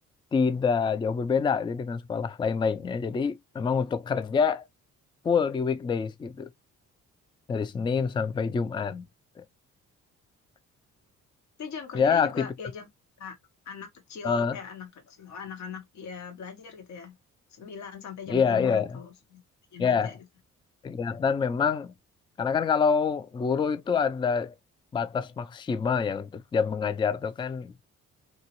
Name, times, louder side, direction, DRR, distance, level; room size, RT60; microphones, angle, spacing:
voice 1, 0.3-4.6 5.2-6.5 7.5-9.1 9.4-9.5 11.9-12.5 14.2-14.6 18.3-19.0 19.8-20.1 20.8-21.9 22.4-24.5 24.9-27.7, left 6 dB, 15° left, 0.3 m, -26 dB
voice 2, 11.6-12.9 13.2-13.4 13.6-17.1 17.5-19.4 19.7-20.2, left 7 dB, 65° left, 1.1 m, -40 dB
2.9 x 2.7 x 2.9 m
cardioid pair, 90°, 30 cm